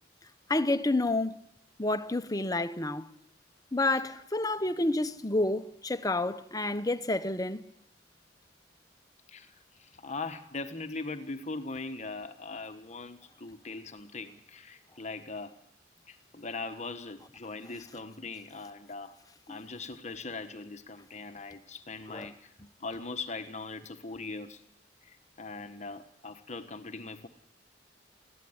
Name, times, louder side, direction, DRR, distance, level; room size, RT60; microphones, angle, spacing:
voice 1, 0.5-1.4 1.8-3.1 3.7-7.6 19.5-19.6 22.1-22.3, left 2 dB, 20° left, 1.0 m, -29 dB
voice 2, 9.3-15.6 16.1-19.2 19.5-22.5 22.8-24.6 25.0-27.3, left 3 dB, 40° left, 1.3 m, -40 dB
21.0 x 15.5 x 9.6 m
head